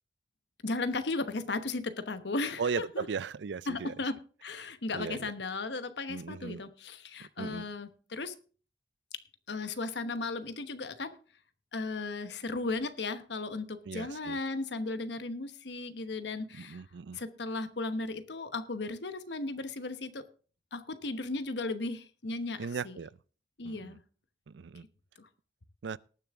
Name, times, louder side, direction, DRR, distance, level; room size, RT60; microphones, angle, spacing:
voice 1, 0.6-3.1 3.7-8.3 9.1-11.2 11.7-16.8 17.1-20.2 20.7-23.0 23.6-24.0 25.2-25.3, left 3 dB, 80° left, 1.1 m, -36 dB
voice 2, 2.6-3.9 4.9-5.3 6.1-6.6 7.2-7.7 13.9-14.4 16.6-17.2 22.6-23.1 23.6-24.0 24.5-24.8 25.8-26.0, right 5 dB, 85° right, 0.4 m, -37 dB
19.0 x 7.0 x 3.6 m
head